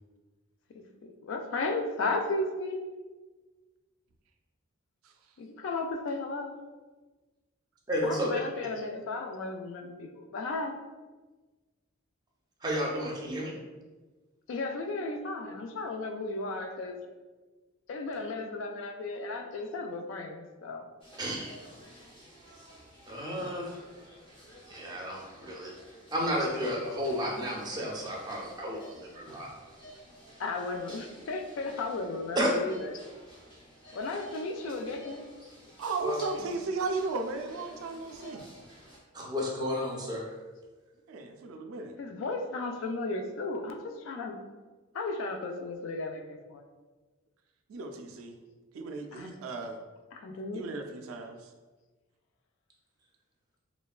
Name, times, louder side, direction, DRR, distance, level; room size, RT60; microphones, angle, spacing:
voice 1, 1.0-2.8 5.4-6.5 8.0-10.8 14.5-17.0 17.9-20.8 30.4-32.7 33.9-35.2 42.0-44.4 44.9-46.7 49.1-49.4 50.1-50.6, left 3 dB, 65° left, 4 dB, 0.3 m, -34 dB
voice 2, 7.9-8.3 12.6-13.5 21.2-21.6 23.1-23.8 24.7-25.7 26.1-29.5 32.4-32.5 36.0-36.2 39.1-40.3, equal, 20° right, -2 dB, 0.4 m, -32 dB
sound 1, 21.0-39.0, equal, 25° left, 0.6 m, -52 dB
voice 3, 35.8-38.5 41.1-41.9 47.7-48.4 48.7-49.8 50.5-51.5, right 3 dB, 80° right, 5 dB, 0.3 m, -35 dB
3.1 x 2.2 x 2.3 m, 1.3 s
head